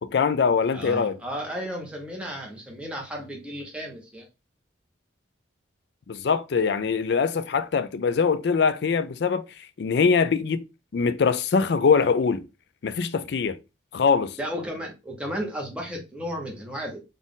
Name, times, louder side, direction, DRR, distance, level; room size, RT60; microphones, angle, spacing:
voice 1, 0.0-1.2 6.1-9.4 9.8-10.6 10.9-12.5 12.8-13.6 13.9-14.4, left 5 dB, 60° left, 0.4 m, -23 dB
voice 2, 0.7-4.3 14.4-17.0, equal, 5° right, 1.0 m, -34 dB
4.0 x 2.5 x 3.7 m
head